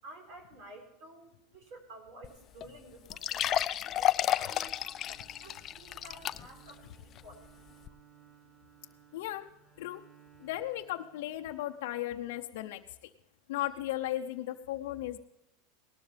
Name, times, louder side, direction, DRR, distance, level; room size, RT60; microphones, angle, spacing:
voice 1, 0.0-7.5, right 2 dB, 60° right, 3 dB, 4.5 m, -52 dB
sound 1, 2.2-2.3 2.6-2.7 3.1-6.7 7.2-7.3 7.9-8.0, left 12 dB, 35° left, 0.5 m, -31 dB
Bowed string instrument, 4.6-11.8, right 10 dB, 15° right, 1.9 m, -61 dB
voice 2, 9.1-9.5 9.8-10.0 10.4-13.1 13.5-15.2, left 14 dB, 75° left, 3 dB, 0.7 m, -36 dB
18.5 x 12.5 x 3.4 m, 0.88 s
supercardioid pair, 125°, 0 cm